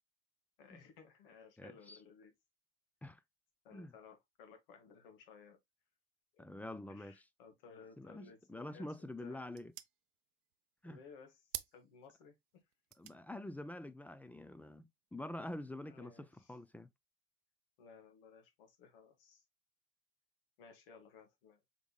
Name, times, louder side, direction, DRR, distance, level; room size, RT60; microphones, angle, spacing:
voice 1, 0.6-2.3 3.6-5.6 6.9-8.9 9.2-9.4 10.8-11.4 11.7-12.4 15.9-16.3 17.8-19.4 20.6-21.6, left 5 dB, 70° left, 1.5 m, -58 dB
voice 2, 1.6-2.0 3.0-3.2 3.7-3.9 6.4-7.2 8.0-9.7 10.8-11.0 13.0-16.9, left 1 dB, 5° left, 0.4 m, -46 dB
sound 1, 8.5-15.3, right 16 dB, 60° right, 0.5 m, -53 dB
5.1 x 3.5 x 2.2 m
hypercardioid pair, 85°, 29 cm